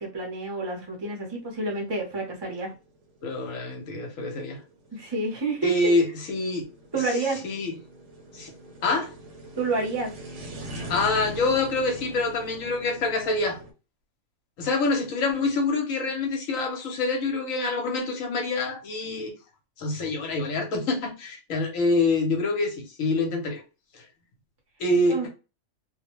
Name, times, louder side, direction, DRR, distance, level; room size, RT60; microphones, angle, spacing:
voice 1, 0.0-2.7 4.9-5.9 6.9-7.4 9.6-10.1 25.1-25.3, right 2 dB, 25° right, 0.6 m, -29 dB
sound 1, 1.2-13.7, right 1 dB, 65° right, 0.9 m, -42 dB
voice 2, 3.2-4.6 5.6-6.6 7.4-7.7 8.3-8.5 8.8-9.1 10.9-13.6 14.6-19.3 19.8-23.6 24.8-25.3, left 3 dB, 75° left, 1.1 m, -26 dB
2.4 x 2.1 x 2.9 m
omnidirectional pair, 1.4 m